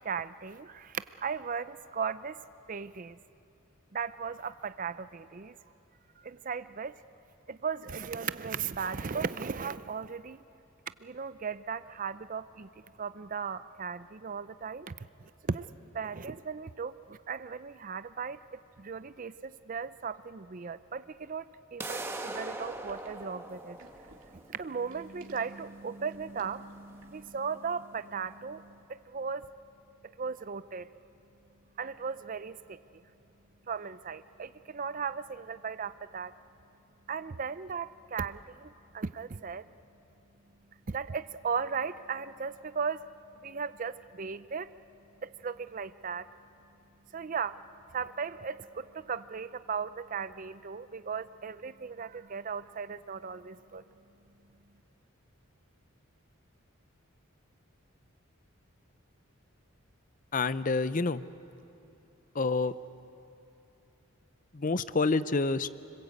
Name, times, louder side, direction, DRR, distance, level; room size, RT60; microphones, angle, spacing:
voice 1, 0.0-2.4 2.7-3.2 3.9-5.5 6.2-7.0 7.5-10.4 11.0-12.7 13.0-15.0 15.4-15.6 15.9-18.4 18.8-21.4 21.7-23.8 24.5-29.5 30.2-30.9 31.8-32.8 33.7-36.3 37.1-39.7 40.9-43.0 43.4-44.7 45.2-46.3 47.1-47.6 47.9-53.8, right 6 dB, 40° right, 14 dB, 0.5 m, -37 dB
sound 1, 21.8-27.8, right 2 dB, 10° right, 1.3 m, -42 dB
sound 2, 22.6-27.3, right 2 dB, 65° right, 2.7 m, -57 dB
voice 2, 60.3-61.2 62.3-62.7 64.5-65.7, left 3 dB, 40° left, 14 dB, 0.6 m, -28 dB
29.5 x 21.5 x 8.3 m, 2.8 s
head